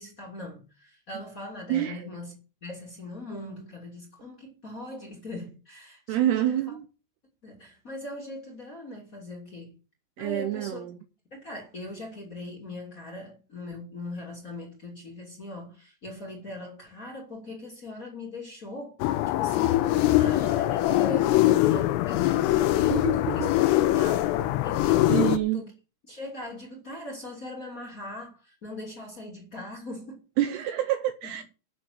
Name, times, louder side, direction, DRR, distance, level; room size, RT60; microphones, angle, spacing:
voice 1, 0.0-6.6 7.4-9.7 10.2-10.8 11.3-25.2 25.5-25.7 26.1-30.2 31.2-31.4, left 2 dB, 25° left, 1.9 m, -40 dB
voice 2, 1.7-2.1 6.1-6.9 10.2-11.0 22.9-23.5 25.1-25.6 30.4-31.4, right 12 dB, 80° right, 2.4 m, -27 dB
sound 1, 19.0-25.4, left 15 dB, 90° left, 3.6 m, -23 dB
10.5 x 6.6 x 7.7 m
omnidirectional pair, 5.8 m